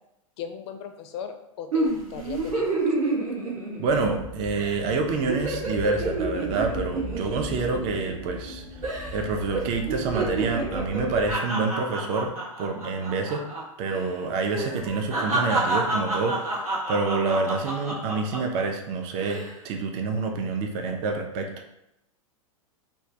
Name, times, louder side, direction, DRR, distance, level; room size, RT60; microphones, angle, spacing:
voice 1, 0.4-2.8, left 7 dB, 50° left, 7 dB, 0.4 m, -37 dB
sound 1, 1.7-4.2 4.6-4.8 5.1-8.5 8.8-9.2 9.5-13.6 13.9-14.1 14.5-18.6 19.1-19.5, right 2 dB, 90° right, 0.9 m, -29 dB
voice 2, 3.8-8.6 9.1-13.4 13.8-21.5, right 4 dB, 35° right, 3 dB, 0.4 m, -27 dB
sound 2, 3.9-11.3, left 1 dB, 10° right, 0.8 m, -39 dB
2.2 x 2.2 x 2.6 m, 0.83 s
hypercardioid pair, 105°, 18 cm